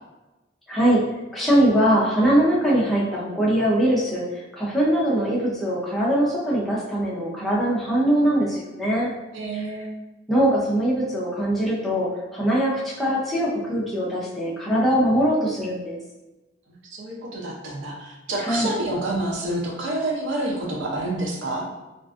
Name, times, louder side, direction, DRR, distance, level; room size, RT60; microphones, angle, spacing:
voice 1, 0.7-1.0 1.3-4.2 4.5-9.1 9.5-9.6 10.3-16.0 18.4-18.7, right 1 dB, ahead, -7 dB, 0.5 m, -22 dB
voice 2, 9.3-9.9 16.9-21.6, right 1 dB, 85° right, -2 dB, 0.6 m, -28 dB
2.5 x 2.3 x 2.4 m, 1.1 s
head